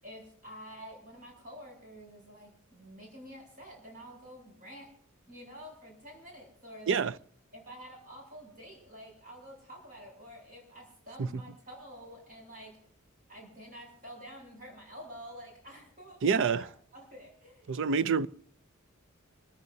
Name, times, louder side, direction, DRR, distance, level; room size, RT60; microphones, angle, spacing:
voice 1, 0.0-4.9 5.3-7.0 7.5-12.8 13.3-18.3, equal, 40° right, 7.6 m, -49 dB
voice 2, 16.2-16.6 17.7-18.3, right 5 dB, 60° right, 0.5 m, -27 dB
27.0 x 15.0 x 2.8 m
head